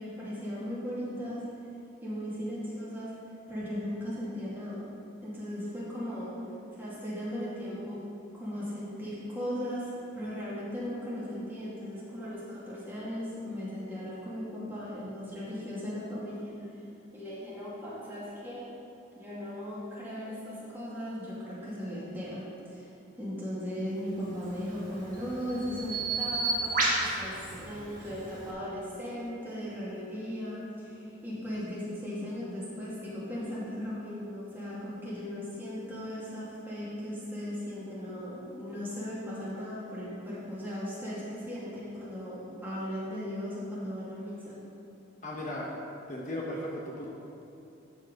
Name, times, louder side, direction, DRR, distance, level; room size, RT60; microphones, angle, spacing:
voice 1, 0.0-1.4 2.0-3.1 3.5-4.8 5.2-6.4 6.8-8.0 8.3-16.6 17.1-18.6 19.1-22.9 23.2-44.6, equal, 10° right, -9 dB, 2.4 m, -37 dB
Bird vocalization bird call bird song, 24.3-28.5, right 2 dB, 40° right, 1.8 m, -33 dB
voice 2, 45.2-45.7 46.1-47.1, left 1 dB, 40° left, -3 dB, 0.9 m, -36 dB
13.5 x 4.8 x 5.2 m, 2.8 s
head